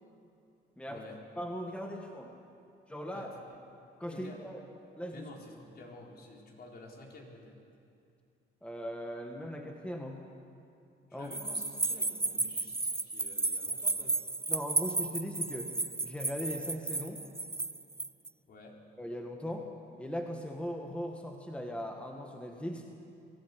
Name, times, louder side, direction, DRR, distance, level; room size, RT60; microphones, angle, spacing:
voice 1, 0.9-1.2 3.1-3.6 4.1-4.5 5.1-7.6 11.1-14.2 18.5-18.8, left 2 dB, 50° left, -1 dB, 4.0 m, -50 dB
voice 2, 1.4-2.3 2.9-3.3 4.0-4.6 5.0-5.3 8.6-10.2 11.1-11.3 14.5-15.7 16.0-17.2 19.0-19.7 20.0-22.8, equal, 5° left, 2 dB, 1.7 m, -39 dB
sound 1, 11.3-18.3, right 2 dB, 10° right, 0.6 m, -33 dB
23.0 x 14.0 x 8.4 m, 2.5 s
cardioid pair, 90°, 20 cm